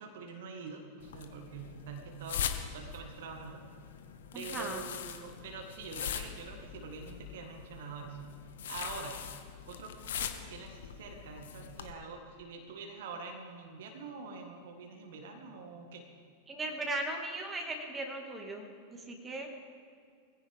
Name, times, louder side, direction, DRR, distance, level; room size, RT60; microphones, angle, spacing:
voice 1, 0.0-3.6 4.3-8.2 8.7-9.2 9.7-16.0, right 4 dB, 55° right, 3 dB, 1.7 m, -45 dB
sound 1, 1.0-11.9, left 8 dB, 60° left, 1.0 m, -42 dB
voice 2, 4.3-4.8 16.5-19.5, right 2 dB, 15° right, 2 dB, 2.0 m, -38 dB
21.0 x 15.5 x 3.6 m, 2.3 s
figure-of-eight pair, 90°, 0 cm